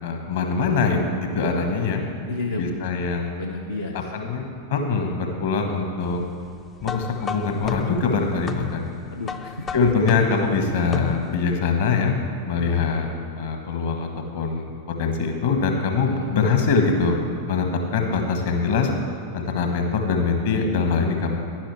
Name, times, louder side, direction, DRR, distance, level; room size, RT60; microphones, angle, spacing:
voice 1, 0.0-2.0 2.6-3.3 4.1-4.4 4.7-6.2 6.8-8.9 9.7-12.2 12.4-13.1 13.3-14.1 14.3-14.7 15.0-17.2 17.5-18.9 19.3-21.4, left 4 dB, 55° left, 4 dB, 1.2 m, -23 dB
voice 2, 2.3-2.8 3.4-4.1 9.1-9.7 16.1-16.3, left 2 dB, 75° left, -1 dB, 0.7 m, -31 dB
sound 1, 6.8-11.5, left 8 dB, 25° left, 0.3 m, -32 dB
10.5 x 10.5 x 3.3 m, 2.3 s
figure-of-eight pair, 90°, 0 cm